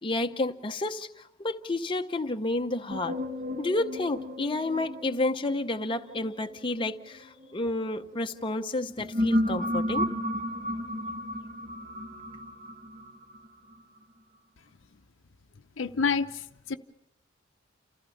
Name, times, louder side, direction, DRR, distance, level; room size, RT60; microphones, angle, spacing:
voice 1, 0.0-3.2 3.6-10.1, left 2 dB, 25° left, 0.8 m, -30 dB
sound 1, 2.9-8.2 8.8-13.7, left 1 dB, 35° right, 1.4 m, -33 dB
voice 2, 15.8-16.8, left 5 dB, 70° left, 0.8 m, -28 dB
29.0 x 15.0 x 7.1 m
head